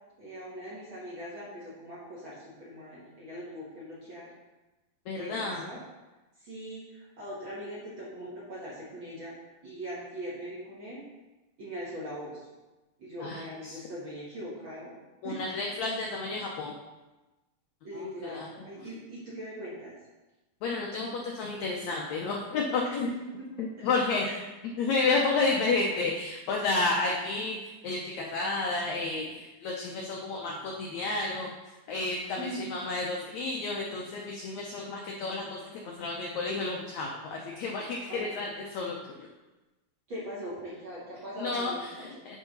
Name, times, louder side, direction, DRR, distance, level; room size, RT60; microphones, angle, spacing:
voice 1, 0.2-4.3 5.1-5.8 6.4-9.3 9.6-11.0 11.6-12.5 13.0-14.9 15.2-15.4 17.8-20.0 23.0-23.9 24.2-24.4 32.4-32.6 38.1-38.3 40.1-42.1, equal, 45° right, -7 dB, 1.7 m, -41 dB
voice 2, 5.1-5.7 13.2-13.8 15.2-16.7 17.9-18.5 20.6-23.1 23.6-24.3 24.6-27.6 27.8-39.3 41.4-42.4, left 3 dB, 80° left, -1 dB, 1.6 m, -31 dB
8.8 x 3.9 x 5.2 m, 1.1 s
omnidirectional pair, 4.2 m